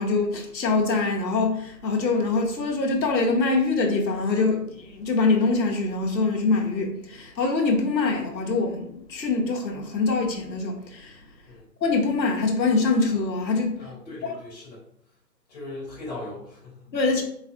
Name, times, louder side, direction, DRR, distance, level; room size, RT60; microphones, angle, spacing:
voice 1, 0.0-11.2 11.8-13.9 14.2-14.4 16.9-17.2, left 3 dB, 85° left, 0.9 m, -24 dB
voice 2, 13.8-14.8 15.5-16.9, left 2 dB, 25° left, 1.0 m, -39 dB
4.1 x 2.5 x 2.4 m
figure-of-eight pair, 155°, 50 cm